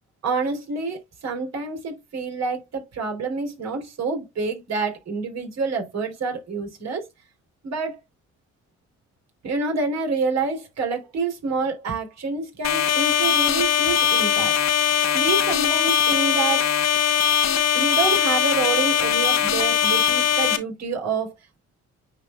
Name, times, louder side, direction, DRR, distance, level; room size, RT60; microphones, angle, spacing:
voice 1, 0.2-7.0 7.6-8.0 9.4-14.5 15.1-16.7 17.7-21.3, right 4 dB, 60° right, 3.7 m, -27 dB
sound 1, 12.6-20.6, left 9 dB, 60° left, 1.3 m, -20 dB
9.6 x 4.7 x 2.3 m
cardioid pair, 90°, 30 cm